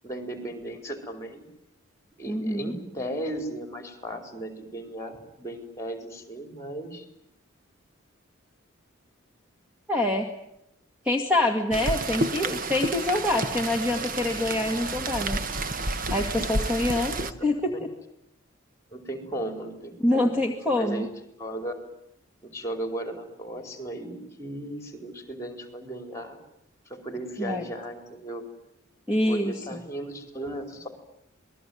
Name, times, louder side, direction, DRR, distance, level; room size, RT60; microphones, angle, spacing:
voice 1, 0.0-1.4 2.2-7.1 17.2-17.3 18.9-20.3 20.7-21.1 21.4-21.7 22.4-26.4 26.8-28.4 29.3-30.9, right 1 dB, 15° left, 7 dB, 4.6 m, -36 dB
voice 2, 2.3-2.7 9.9-10.3 11.0-15.4 16.1-17.9 20.0-21.1 27.4-27.6 29.1-29.8, left 1 dB, 5° right, 2 dB, 2.2 m, -26 dB
Rain, 11.7-17.3, right 2 dB, 45° right, 1.3 m, -30 dB
27.5 x 20.5 x 9.5 m, 0.80 s
head